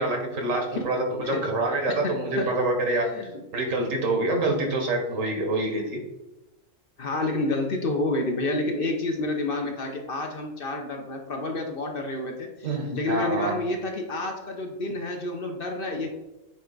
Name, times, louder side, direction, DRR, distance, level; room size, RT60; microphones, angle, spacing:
voice 1, 0.0-3.1 3.5-6.0 12.6-13.6, right 2 dB, 80° right, 2 dB, 1.6 m, -26 dB
voice 2, 1.9-2.5 2.9-3.3 7.0-16.1, left 2 dB, 50° left, 3 dB, 0.9 m, -29 dB
7.8 x 3.4 x 3.9 m, 1.0 s
omnidirectional pair, 1.3 m